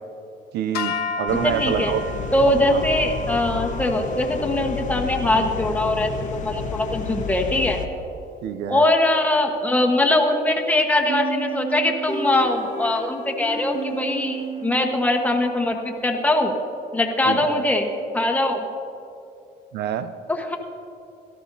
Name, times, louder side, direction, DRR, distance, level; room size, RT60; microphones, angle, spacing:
voice 1, 0.5-2.0 2.7-2.8 8.4-8.9 17.3-17.7 19.7-20.1, right 9 dB, 75° right, 11 dB, 0.6 m, -27 dB
sound 1, 0.7-7.1, left 4 dB, 70° left, 1.2 m, -34 dB
sound 2, 1.3-7.9, left 5 dB, 45° left, 0.9 m, -31 dB
voice 2, 1.4-1.9 2.3-7.8 8.7-16.5 16.9-17.9 18.1-18.6 20.3-20.6, left 1 dB, 10° left, 2 dB, 1.2 m, -22 dB
sound 3, 11.1-15.7, right 5 dB, 45° right, 1.7 m, -32 dB
17.0 x 13.5 x 2.7 m, 2.8 s
cardioid pair, 110°, 17 cm